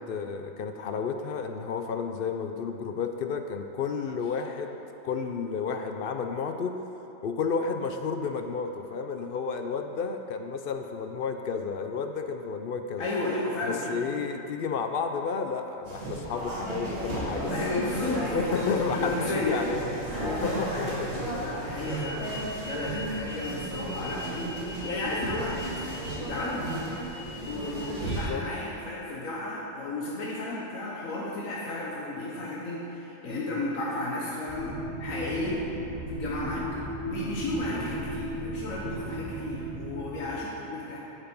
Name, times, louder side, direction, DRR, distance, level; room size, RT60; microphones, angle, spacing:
voice 1, 0.1-4.8 5.0-6.7 7.2-13.1 13.6-19.9 20.2-21.1 28.1-28.4, left 5 dB, 60° left, 6 dB, 0.6 m, -32 dB
voice 2, 13.0-14.0 17.5-18.7 18.9-19.6 20.2-25.6 26.2-26.9 27.4-35.6 36.1-36.6 37.1-41.0, left 2 dB, 85° left, -5 dB, 1.5 m, -33 dB
sound 1, 15.8-28.2, right 1 dB, 50° right, 2.3 m, -34 dB
sound 2, 34.5-40.4, right 1 dB, 30° right, 1.7 m, -35 dB
8.7 x 7.2 x 5.4 m, 2.9 s
omnidirectional pair, 1.4 m